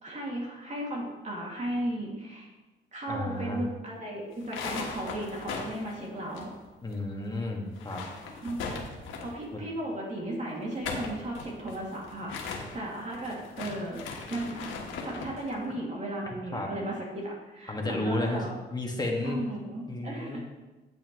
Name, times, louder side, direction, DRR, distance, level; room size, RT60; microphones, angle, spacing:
voice 1, 0.0-2.5 2.9-6.5 8.4-8.6 9.2-14.0 14.3-14.7 15.0-18.5 19.2-20.4, right 1 dB, 35° right, -4 dB, 2.5 m, -35 dB
voice 2, 3.1-3.6 6.8-8.0 16.5-16.7 17.7-18.4 18.7-19.4 19.9-20.4, left 2 dB, 20° left, 0 dB, 1.8 m, -32 dB
sound 1, 4.3-7.0 7.2-7.3 7.7-9.5 10.6-15.4, left 4 dB, 85° left, 1.4 m, -39 dB
8.9 x 8.9 x 3.1 m, 1.1 s
cardioid pair, 90°, 20 cm